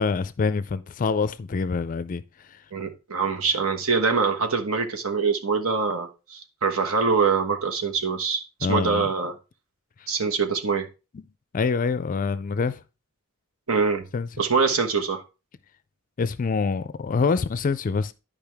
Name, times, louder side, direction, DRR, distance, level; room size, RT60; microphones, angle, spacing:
voice 1, 0.0-2.2 2.5-2.6 8.6-9.1 11.1-11.2 11.5-12.8 14.1-14.3 16.2-18.1, left 4 dB, 40° left, 0.4 m, -25 dB
voice 2, 2.7-8.4 8.7-9.3 10.1-10.9 13.7-14.1 14.4-15.2, right 5 dB, 75° right, 1.2 m, -24 dB
10.5 x 5.1 x 3.5 m
head